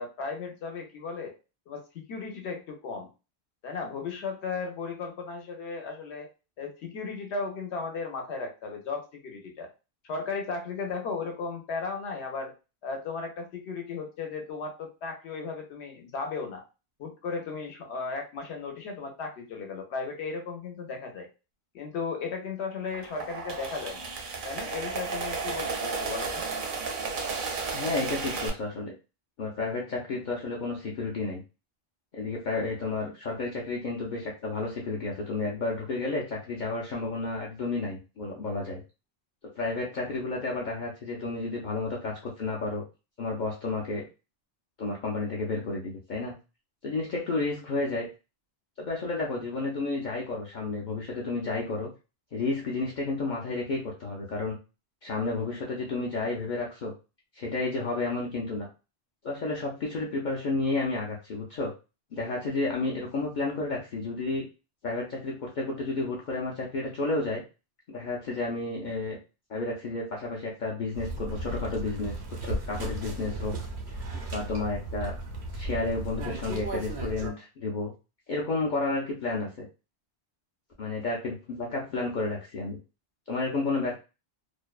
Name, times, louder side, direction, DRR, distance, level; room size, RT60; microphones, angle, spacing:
voice 1, 0.0-1.3 1.7-3.1 3.6-6.3 6.6-9.7 10.0-12.5 12.8-16.6 17.0-21.3 21.7-24.1 24.4-26.4, left 4 dB, 85° left, 3 dB, 1.0 m, -35 dB
sound 1, 22.9-28.5, right 4 dB, 60° right, 0.6 m, -33 dB
voice 2, 27.7-28.9 29.4-31.4 32.1-38.8 39.6-42.8 43.2-44.1 44.8-46.4 46.8-48.1 48.8-51.9 52.3-54.6 55.0-56.9 57.3-58.7 59.2-61.7 62.1-64.5 64.8-67.4 67.9-69.2 69.5-73.6 74.3-75.1 75.5-77.9 78.3-79.7 80.8-82.8 83.3-84.0, left 3 dB, 55° left, -2 dB, 0.6 m, -31 dB
sound 2, 70.9-77.3, right 2 dB, 90° right, 0.9 m, -35 dB
2.5 x 2.1 x 2.3 m, 0.30 s
omnidirectional pair, 1.1 m